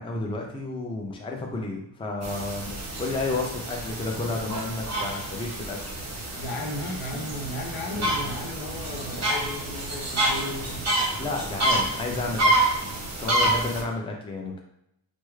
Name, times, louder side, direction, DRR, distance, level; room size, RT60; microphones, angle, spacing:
voice 1, 0.0-5.8 11.2-12.9 13.2-14.6, left 3 dB, 10° left, 1 dB, 0.4 m, -31 dB
sound 1, 2.2-13.8, right 1 dB, 35° right, 0.8 m, -28 dB
voice 2, 6.4-10.9, left 1 dB, 80° left, 3 dB, 0.7 m, -35 dB
3.3 x 2.1 x 3.1 m, 0.80 s
cardioid pair, 110°, 47 cm